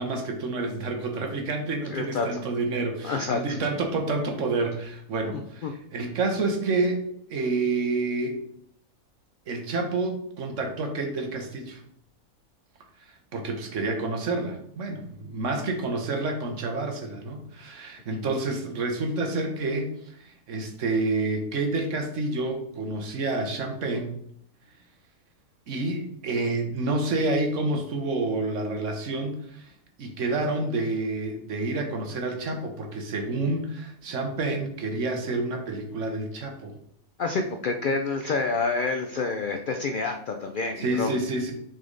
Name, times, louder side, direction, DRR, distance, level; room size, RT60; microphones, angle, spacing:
voice 1, 0.0-8.4 9.5-11.8 13.3-19.9 20.2-24.1 25.7-29.7 30.0-36.7 40.8-41.5, right 2 dB, 65° right, 3 dB, 1.3 m, -29 dB
voice 2, 1.9-2.4 3.0-3.6 5.3-5.7 37.2-41.2, left 3 dB, 65° left, 5 dB, 0.5 m, -28 dB
6.3 x 4.2 x 3.9 m, 0.69 s
omnidirectional pair, 1.5 m